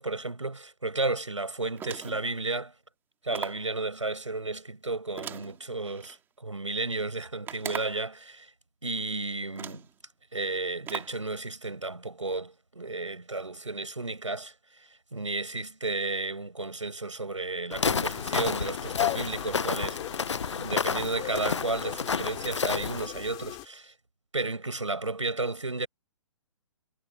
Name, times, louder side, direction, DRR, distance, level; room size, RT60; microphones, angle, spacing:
voice 1, 0.0-2.7 3.2-8.5 8.8-9.8 10.3-14.5 15.1-20.3 20.6-23.9 24.3-25.9, right 3 dB, 80° right, 6.5 m, -33 dB
sound 1, 1.7-2.3 3.3-3.7 5.2-6.2 7.5-8.1 9.0-9.1 9.5-9.9 10.9-11.2, right 9 dB, 15° right, 2.8 m, -40 dB
Walk footsteps, 17.7-23.1, left 5 dB, 70° left, 0.7 m, -30 dB
sound 2, 17.9-23.6, left 26 dB, 25° left, 4.2 m, -38 dB
figure-of-eight pair, 125°, 16 cm